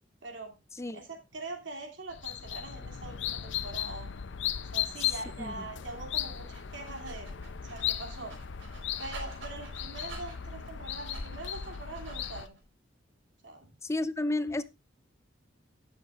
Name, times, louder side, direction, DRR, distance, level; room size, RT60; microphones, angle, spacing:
voice 1, 0.2-0.5 0.9-4.1 4.7-7.3 7.6-8.3 9.0-12.6 13.4-13.7, right 2 dB, 75° right, 2.7 m, -43 dB
sound 1, 2.1-12.5, left 10 dB, 70° left, 0.6 m, -37 dB
voice 2, 5.4-5.7 13.8-14.6, left 2 dB, 15° left, 0.5 m, -32 dB
Dog, 6.6-12.6, right 1 dB, 90° right, 4.2 m, -47 dB
17.0 x 7.1 x 2.4 m
head